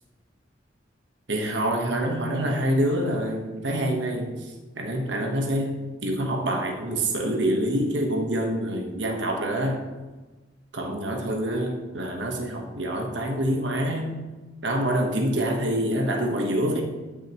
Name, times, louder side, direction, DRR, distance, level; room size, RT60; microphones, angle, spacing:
voice 1, 1.3-4.3 4.8-9.8 10.7-14.1 14.6-16.8, right 1 dB, 80° right, 2 dB, 1.3 m, -26 dB
13.5 x 6.3 x 3.1 m, 1.2 s
head